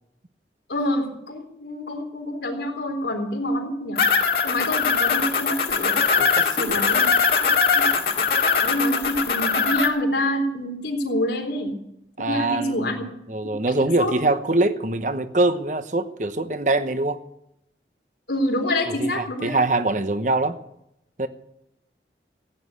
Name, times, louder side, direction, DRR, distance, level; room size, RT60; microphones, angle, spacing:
voice 1, 0.7-4.0 4.4-5.9 6.6-7.0 7.4-7.8 8.6-11.7 12.3-13.0 14.0-14.1 18.3-19.6, left 1 dB, 75° left, 2 dB, 3.8 m, -26 dB
sound 1, 4.0-9.9, left 5 dB, 55° left, 2.0 m, -21 dB
voice 2, 6.2-6.8 12.2-13.0 13.3-17.2 18.9-20.6 21.2-21.3, right 2 dB, 45° right, 10 dB, 1.0 m, -24 dB
16.5 x 9.8 x 8.3 m, 0.81 s
head